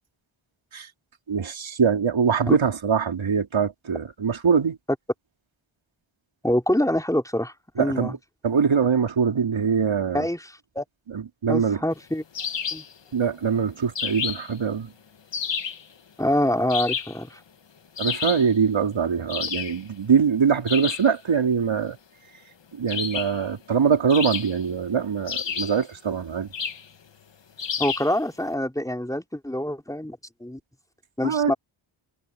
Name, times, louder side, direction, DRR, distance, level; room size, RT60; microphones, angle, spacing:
voice 1, 1.3-4.8 7.8-8.2 8.4-10.3 11.1-11.8 13.1-14.9 18.0-22.0 22.7-26.5 31.2-31.5, right 6 dB, 65° right, 3.9 m, -23 dB
voice 2, 6.4-8.1 10.1-10.8 11.5-12.2 12.7-12.8 16.2-17.4 27.8-30.6 31.2-31.5, left 1 dB, 5° left, 3.8 m, -25 dB
sound 1, 12.3-12.9 14.0-14.6 15.3-15.8 16.7-17.2 18.0-18.5 19.3-19.8 20.7-21.1 22.9-23.4 24.1-24.8 25.3-25.8 26.5-26.9 27.6-28.1, left 6 dB, 60° left, 1.8 m, -30 dB
wide cardioid pair, 80°, 49 cm